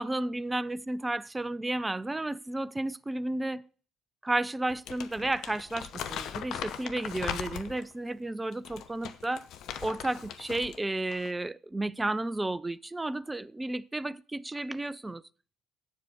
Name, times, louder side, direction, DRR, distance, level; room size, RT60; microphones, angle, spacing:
voice 1, 0.0-3.6 4.2-9.5 9.8-15.2, right 2 dB, 15° right, 0.5 m, -32 dB
Crumpling crinkling, 4.7-7.9 8.5-10.8 11.1-11.3, left 9 dB, 50° left, 0.9 m, -39 dB
8.3 x 7.4 x 6.7 m
figure-of-eight pair, 50°, 0 cm